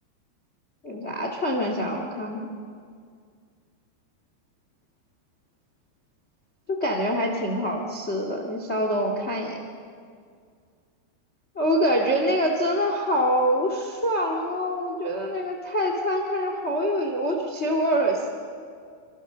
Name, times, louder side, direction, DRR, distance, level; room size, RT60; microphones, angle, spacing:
voice 1, 0.8-2.5 6.7-9.6 11.5-18.3, equal, 80° left, 3 dB, 0.6 m, -25 dB
26.5 x 25.5 x 6.8 m, 2.2 s
omnidirectional pair, 5.1 m